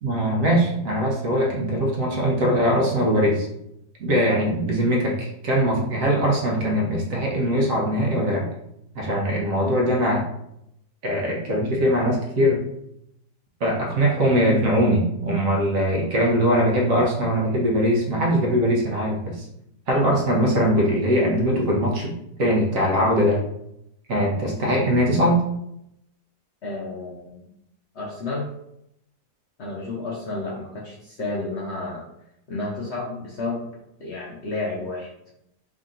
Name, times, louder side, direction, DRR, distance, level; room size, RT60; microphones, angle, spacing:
voice 1, 0.0-3.5 4.0-8.5 8.9-10.2 11.0-12.6 13.6-19.4 19.9-22.1 22.4-23.4 24.1-25.4, equal, 60° right, -2 dB, 1.2 m, -21 dB
voice 2, 26.6-27.4 27.9-28.5 29.6-32.0 32.5-33.7 34.0-35.1, left 2 dB, 60° left, -3 dB, 0.8 m, -31 dB
3.6 x 2.8 x 3.7 m, 0.79 s
omnidirectional pair, 1.7 m